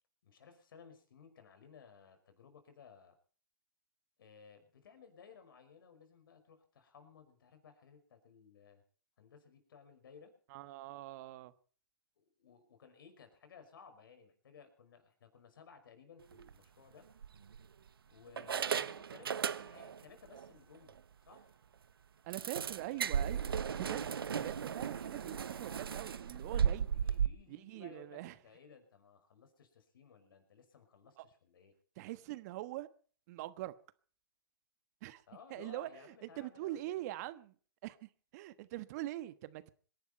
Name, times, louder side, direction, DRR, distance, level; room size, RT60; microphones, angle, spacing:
voice 1, 0.2-3.1 4.2-8.8 9.2-10.3 12.2-17.1 18.1-21.0 21.3-21.6 26.9-31.7 35.3-37.1, left 6 dB, 70° left, 5.7 m, -59 dB
voice 2, 10.5-11.5 22.2-23.4 23.7-26.9 27.5-28.3 31.2-31.3 32.0-32.9 33.3-33.7 35.0-35.2 35.5-37.5 37.8-39.7, right 16 dB, 45° right, 1.3 m, -43 dB
sound 1, 16.3-16.5 17.2-17.9 18.4-20.0 20.3-20.5 20.9-21.0 21.3-21.4 22.3-27.3, right 7 dB, 80° right, 1.0 m, -35 dB
26.5 x 11.5 x 4.5 m
hypercardioid pair, 125°, 12 cm